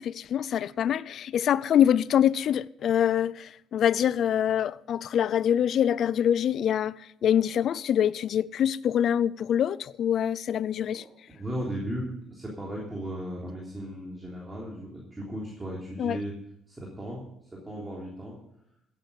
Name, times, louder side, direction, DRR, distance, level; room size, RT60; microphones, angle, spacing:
voice 1, 0.0-7.0 7.2-11.0 16.0-16.2, left 9 dB, 60° left, 0.4 m, -25 dB
voice 2, 11.3-16.3 16.7-17.3 17.5-18.4, equal, 15° right, 3.3 m, -36 dB
15.5 x 9.0 x 5.3 m
cardioid pair, 120°, 0 cm